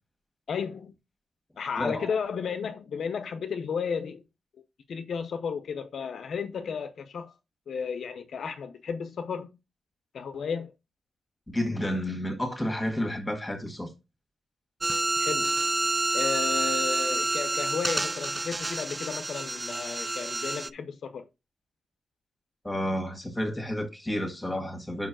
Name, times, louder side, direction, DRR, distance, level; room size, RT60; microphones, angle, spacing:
voice 1, 0.5-0.9 1.6-4.2 4.9-7.3 7.7-9.5 10.1-10.7 15.2-15.6 16.1-21.3, left 6 dB, 60° left, 0.6 m, -33 dB
voice 2, 1.8-2.1 11.5-13.9 22.6-25.1, left 1 dB, 10° left, 1.7 m, -31 dB
sound 1, 14.8-20.7, right 2 dB, 20° right, 0.3 m, -28 dB
5.5 x 4.5 x 5.9 m
wide cardioid pair, 160°, 0 cm